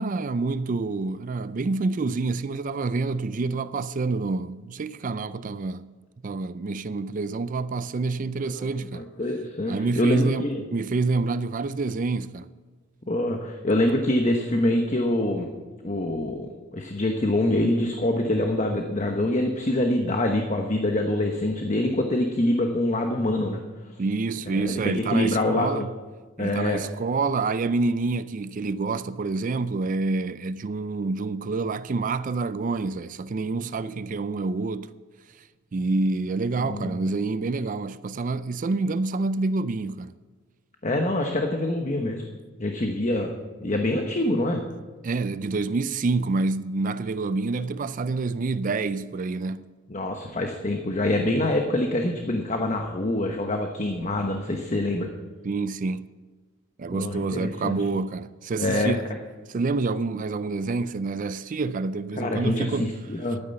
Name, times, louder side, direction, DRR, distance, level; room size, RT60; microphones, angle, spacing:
voice 1, 0.0-5.9 6.2-9.1 9.7-12.5 24.0-25.9 26.4-34.9 35.7-40.1 45.0-49.7 55.4-56.0 56.8-59.0 59.5-62.9, right 3 dB, 40° right, 0.4 m, -27 dB
voice 2, 8.9-10.6 13.1-15.5 15.8-23.6 24.5-25.9 26.4-26.8 36.6-37.1 40.8-42.2 42.6-43.3 43.6-44.6 49.9-55.1 56.9-57.8 58.6-59.0 62.1-63.4, left 1 dB, 35° left, 1.0 m, -25 dB
12.5 x 9.7 x 6.8 m
head